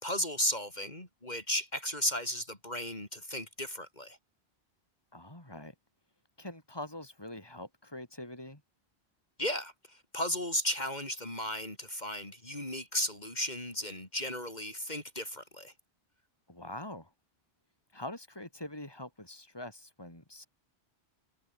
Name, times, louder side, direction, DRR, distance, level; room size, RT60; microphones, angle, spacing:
voice 1, 0.0-4.2 9.4-15.7, equal, 40° left, 4.7 m, -35 dB
voice 2, 5.1-5.7 6.4-8.6 16.5-17.1 17.9-20.5, left 1 dB, 20° left, 4.9 m, -44 dB
omnidirectional pair, 1.1 m